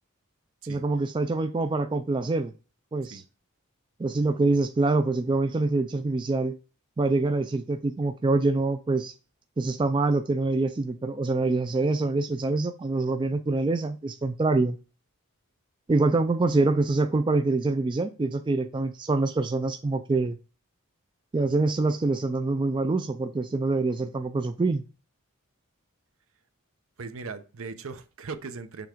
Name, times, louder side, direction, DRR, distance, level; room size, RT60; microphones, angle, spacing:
voice 1, 0.7-2.5 2.9-3.2 4.0-6.5 7.0-9.1 9.6-14.8 15.9-20.4 21.3-24.8, right 3 dB, 20° right, 8 dB, 0.3 m, -25 dB
voice 2, 27.0-28.9, right 4 dB, 65° right, 10 dB, 0.7 m, -38 dB
7.0 x 3.5 x 4.5 m, 0.34 s
head